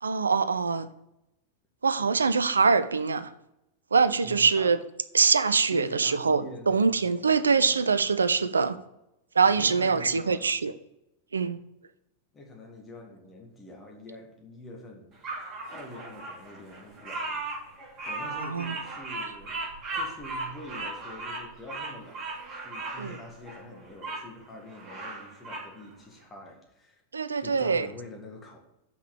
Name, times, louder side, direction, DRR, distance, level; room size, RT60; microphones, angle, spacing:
voice 1, 0.0-0.9 1.8-3.3 3.9-4.8 5.1-8.8 9.4-10.7 11.3-11.6 18.5-18.7 23.0-23.1 27.1-27.9, right 5 dB, 75° right, 0.5 m, -24 dB
voice 2, 4.2-4.7 5.7-8.3 9.4-10.5 11.4-11.6 12.3-15.2 15.7-17.4 18.1-19.6 19.9-22.3 22.6-27.0 27.4-28.6, left 1 dB, 20° left, 1.9 m, -45 dB
Bird vocalization bird call bird song, 15.2-24.2 24.7-25.7, right 2 dB, 30° right, 2.8 m, -37 dB
5.9 x 5.8 x 6.4 m
figure-of-eight pair, 90°, 0 cm